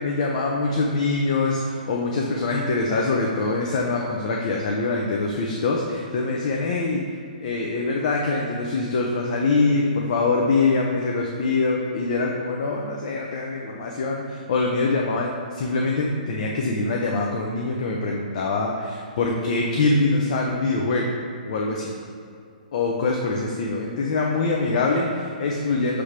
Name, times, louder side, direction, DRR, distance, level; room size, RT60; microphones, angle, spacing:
voice 1, 0.0-7.0 7.4-21.1 21.4-22.0 22.7-26.0, left 3 dB, 55° left, -1 dB, 0.8 m, -24 dB
6.2 x 3.4 x 5.7 m, 2.3 s
hypercardioid pair, 145°, 5 cm